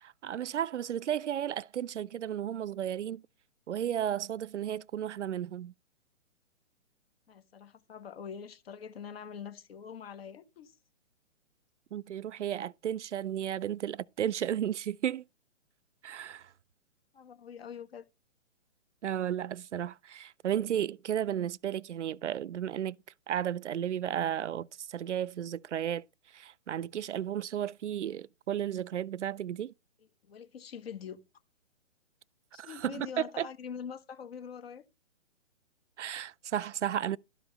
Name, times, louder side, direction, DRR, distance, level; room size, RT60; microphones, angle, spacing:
voice 1, 0.0-3.2 3.7-5.7 11.9-15.2 16.0-16.5 19.0-23.0 23.3-26.0 26.3-29.7 32.6-33.1 33.4-33.5 36.0-37.2, right 10 dB, 70° right, 0.5 m, -33 dB
voice 2, 7.3-10.8 17.1-18.0 30.0-31.2 32.5-34.8, left 7 dB, 55° left, 1.6 m, -44 dB
12.0 x 5.1 x 5.5 m
figure-of-eight pair, 135°, 37 cm